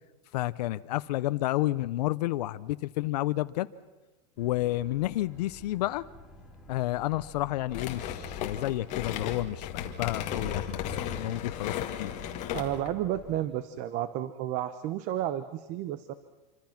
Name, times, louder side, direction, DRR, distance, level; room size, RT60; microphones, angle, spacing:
voice 1, 0.3-3.7 4.4-6.0 6.7-12.1, left 16 dB, 70° left, 13 dB, 0.7 m, -30 dB
Boat Water vehicle, 4.4-13.4, left 1 dB, 5° right, 2.6 m, -51 dB
sound 1, 7.7-12.9, left 9 dB, 35° left, 2.1 m, -35 dB
voice 2, 12.5-16.1, right 12 dB, 35° right, 13 dB, 0.8 m, -32 dB
27.0 x 25.0 x 5.9 m, 1.1 s
supercardioid pair, 160°, 21 cm